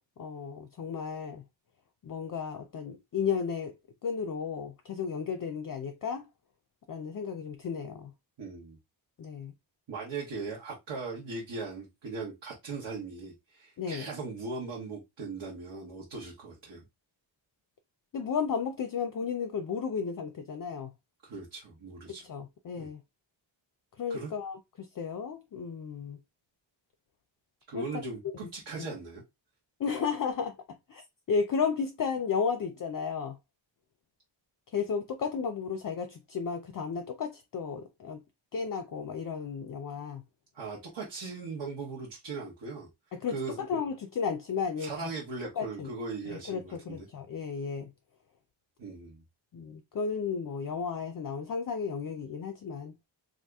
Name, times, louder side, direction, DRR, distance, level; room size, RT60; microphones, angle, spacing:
voice 1, 0.2-1.4 2.0-3.7 4.0-6.2 6.9-8.1 9.2-9.5 13.8-14.1 18.1-20.9 22.1-23.0 24.0-26.2 27.7-27.9 28.8-28.9 29.8-30.5 30.9-31.0 31.3-33.4 34.7-38.2 38.5-40.2 43.1-45.1 45.6-45.9 46.3-47.9 49.5-52.9, left 6 dB, 45° left, 0.5 m, -33 dB
voice 2, 8.4-8.8 9.9-16.8 21.2-22.2 22.8-22.9 24.1-24.3 27.7-29.2 40.5-42.9 43.3-43.6 44.8-47.1 48.8-49.2, right 4 dB, 65° right, 1.1 m, -39 dB
2.8 x 2.4 x 3.4 m
wide cardioid pair, 100°, 48 cm